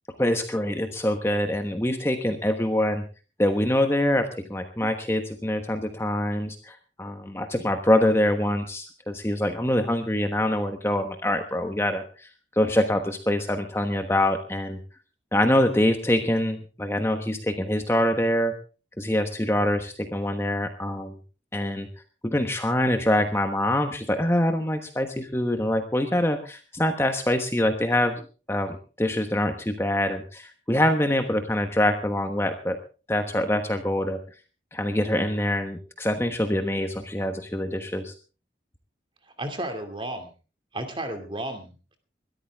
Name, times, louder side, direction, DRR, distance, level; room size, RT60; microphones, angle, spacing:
voice 1, 0.2-3.0 3.4-12.3 12.6-14.8 15.3-18.5 19.0-21.2 21.5-21.9 22.2-28.2 28.5-32.8 33.1-34.2 34.7-38.1, left 1 dB, 15° left, 6 dB, 1.2 m, -25 dB
voice 2, 39.4-40.3 40.7-42.0, right 1 dB, 30° right, 7 dB, 2.5 m, -33 dB
21.0 x 13.5 x 3.6 m, 0.35 s
head